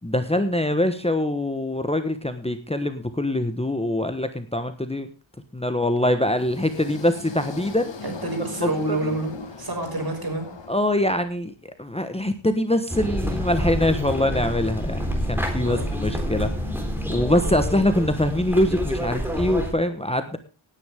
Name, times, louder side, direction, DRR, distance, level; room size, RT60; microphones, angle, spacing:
voice 1, 0.0-5.1 5.5-7.9 10.7-11.5 11.8-16.5 17.1-20.4, left 1 dB, 10° left, 9 dB, 1.2 m, -23 dB
sound 1, 6.2-11.4, left 5 dB, 65° left, 1.9 m, -39 dB
voice 2, 8.0-10.5 15.6-15.9, right 2 dB, 50° right, 3 dB, 5.9 m, -28 dB
sound 2, 12.9-19.7, equal, 5° right, 3.9 m, -28 dB
18.0 x 9.8 x 3.6 m, 0.34 s
wide cardioid pair, 95°, 48 cm